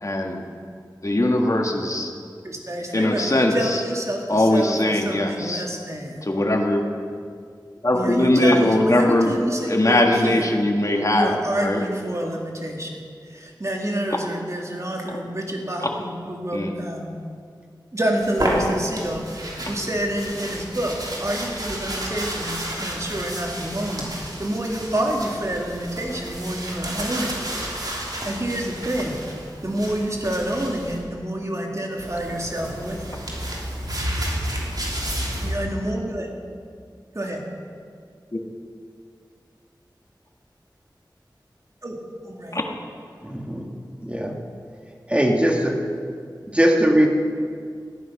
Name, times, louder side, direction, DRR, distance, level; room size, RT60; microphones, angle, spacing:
voice 1, 0.0-0.4 1.0-2.1 2.9-3.8 4.3-5.7 6.2-6.8 7.8-9.3 9.6-11.8 15.8-15.9 16.5-16.7 38.3-38.4 42.5-42.6 44.0-44.2, left 1 dB, 40° left, 2 dB, 1.8 m, -20 dB
voice 2, 2.4-6.2 7.9-10.4 11.1-13.0 13.2-17.2 17.9-27.4 28.2-29.2 29.6-33.2 35.4-36.3 37.1-37.4 41.8-42.0 42.3-42.6, right 1 dB, 40° right, 0 dB, 2.3 m, -28 dB
sound 1, 18.2-31.0 32.0-35.5, right 1 dB, 55° right, 3.3 m, -31 dB
voice 3, 43.2-43.7 44.0-44.4 45.1-45.8 46.5-47.1, equal, 15° right, 1 dB, 2.0 m, -20 dB
14.5 x 11.0 x 6.0 m, 2.2 s
wide cardioid pair, 55°, 8 cm